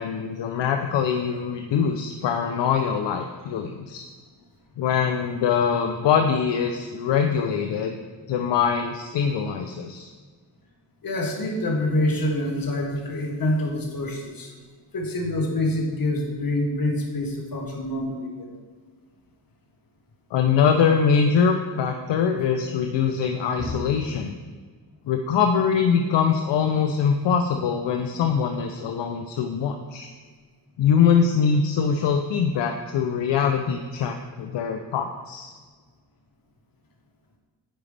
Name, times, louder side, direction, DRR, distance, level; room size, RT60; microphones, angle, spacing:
voice 1, 0.0-4.1 4.8-7.9 8.3-10.1 20.3-24.3 25.1-30.1 30.8-35.5, left 6 dB, 75° left, 5 dB, 0.6 m, -23 dB
voice 2, 11.0-14.5 14.9-18.5 23.6-23.8, left 1 dB, 50° left, 1 dB, 1.5 m, -26 dB
9.1 x 4.9 x 3.3 m, 1.5 s
cardioid pair, 85°, 44 cm